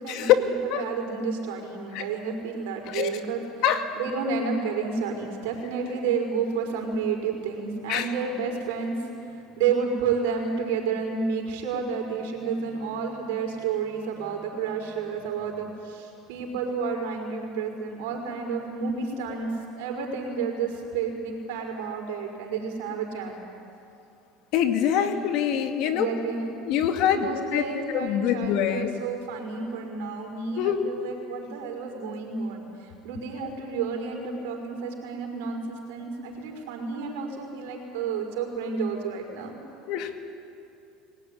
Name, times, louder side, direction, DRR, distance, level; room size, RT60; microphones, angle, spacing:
voice 1, 0.0-3.6 3.9-19.5 19.8-23.4 25.0-25.2 25.8-26.4 27.1-39.6, right 5 dB, 80° right, 2 dB, 5.1 m, -31 dB
voice 2, 2.9-3.2 3.6-3.9 7.9-8.1 24.5-26.1 26.7-28.9 30.6-30.8 39.9-40.2, left 10 dB, 65° left, 7 dB, 2.1 m, -24 dB
22.5 x 18.0 x 10.0 m, 2.7 s
supercardioid pair, 105°, 0 cm